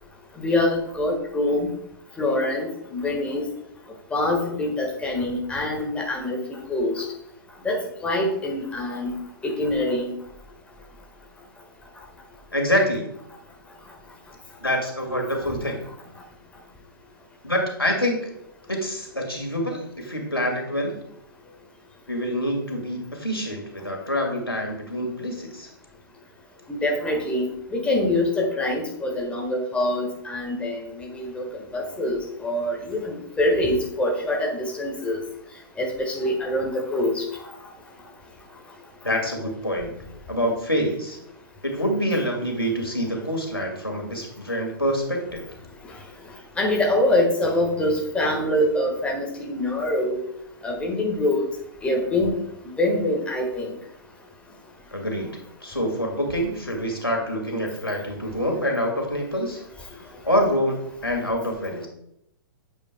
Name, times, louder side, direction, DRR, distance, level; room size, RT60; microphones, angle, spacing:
voice 1, 0.4-1.7 2.2-3.4 4.1-7.0 7.6-7.8 8.0-9.1 9.4-10.1 26.7-35.2 35.8-37.2 46.6-50.2 50.6-51.4 51.8-52.3 52.8-53.7, left 1 dB, 10° left, 0 dB, 1.5 m, -24 dB
voice 2, 12.5-13.0 14.6-15.8 17.4-18.3 18.7-21.0 22.1-25.7 39.0-39.9 40.3-41.2 41.6-45.4 54.9-55.3 55.6-59.6 60.2-61.9, equal, 90° left, 2 dB, 2.0 m, -26 dB
8.9 x 8.4 x 2.2 m, 0.75 s
figure-of-eight pair, 115°, 12 cm